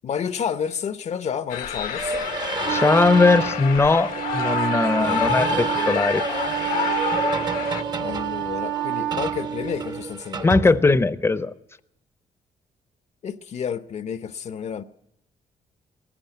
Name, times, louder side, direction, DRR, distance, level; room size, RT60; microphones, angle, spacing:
voice 1, 0.0-2.2 4.9-5.2 8.0-10.5 13.2-14.8, left 7 dB, 55° left, 0.8 m, -30 dB
sound 1, 1.5-7.8, left 10 dB, 80° left, 1.2 m, -28 dB
sound 2, 1.9-3.6 5.0-11.3, right 4 dB, 30° right, 0.8 m, -31 dB
Wind instrument woodwind instrument, 2.6-10.2, right 13 dB, 60° right, 0.8 m, -29 dB
voice 2, 2.7-6.3 10.4-11.5, left 3 dB, 15° left, 0.7 m, -19 dB
19.5 x 14.5 x 9.2 m
cardioid pair, 115°, 14 cm